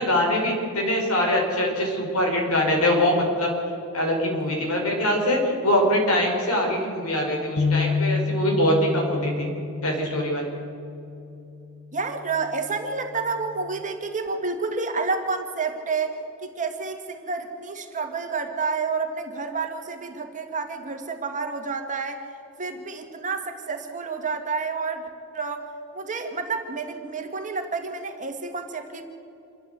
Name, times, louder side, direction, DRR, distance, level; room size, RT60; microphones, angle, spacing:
voice 1, 0.0-3.5 3.9-9.5 9.8-10.5, left 1 dB, 80° left, 1 dB, 5.2 m, -23 dB
sound 1, 7.6-11.8 12.3-12.5 13.4-13.8, left 4 dB, 45° left, 1.2 m, -29 dB
voice 2, 11.9-22.2 22.6-25.1 25.3-25.7 25.9-29.0, right 4 dB, 35° right, 5 dB, 1.9 m, -29 dB
27.0 x 12.5 x 8.1 m, 2.9 s
head